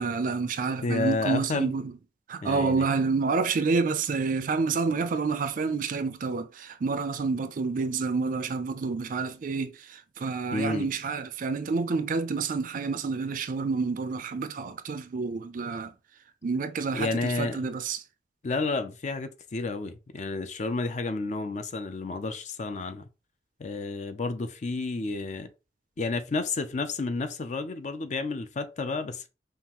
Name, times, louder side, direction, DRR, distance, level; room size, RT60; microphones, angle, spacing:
voice 1, 0.0-1.9 2.3-15.9 16.4-18.0, right 4 dB, 45° right, 0.4 m, -28 dB
voice 2, 0.8-1.7 2.4-2.8 10.5-10.9 16.9-17.7 18.4-23.1 23.6-25.5 26.0-29.3, left 3 dB, 40° left, 0.4 m, -31 dB
5.4 x 2.4 x 2.9 m
head